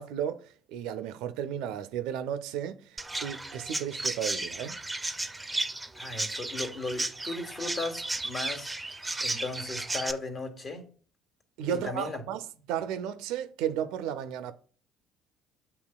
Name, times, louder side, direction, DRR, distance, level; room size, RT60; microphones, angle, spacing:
voice 1, 0.0-4.8 11.6-14.5, right 9 dB, 75° right, 0.4 m, -34 dB
Chirp tweet, 3.0-10.1, right 2 dB, 15° right, 0.4 m, -34 dB
voice 2, 5.9-8.7 9.2-10.8 11.7-12.2, left 3 dB, 45° left, 1.1 m, -36 dB
8.3 x 2.8 x 2.2 m
hypercardioid pair, 65°, 0 cm